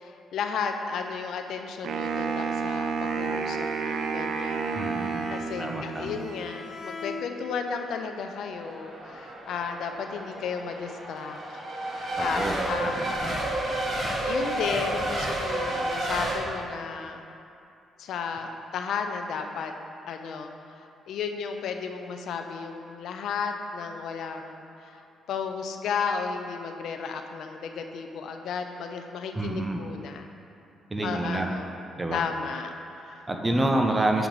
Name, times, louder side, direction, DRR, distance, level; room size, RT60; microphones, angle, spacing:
voice 1, 0.0-4.6 5.3-13.3 14.3-17.2 18.0-19.7 20.1-25.0 25.3-30.3 31.0-31.7 32.1-33.2 33.6-33.7, left 6 dB, 75° left, 5 dB, 0.4 m, -34 dB
Wind instrument woodwind instrument, 1.8-6.1, right 5 dB, 80° right, 0.4 m, -30 dB
Bowed string instrument, 3.1-7.8, left 3 dB, 50° left, 1.1 m, -41 dB
voice 2, 4.7-5.3 5.6-6.2 12.2-13.4 29.3-29.8 30.9-31.5 32.0-32.2 33.3-34.3, right 1 dB, 20° right, 3 dB, 0.6 m, -28 dB
Race car auto racing / Accelerating revving vroom / Mechanisms, 8.5-16.4, right 1 dB, 45° right, 1.2 m, -31 dB
7.2 x 5.0 x 3.1 m, 2.6 s
cardioid pair, 90°, 0 cm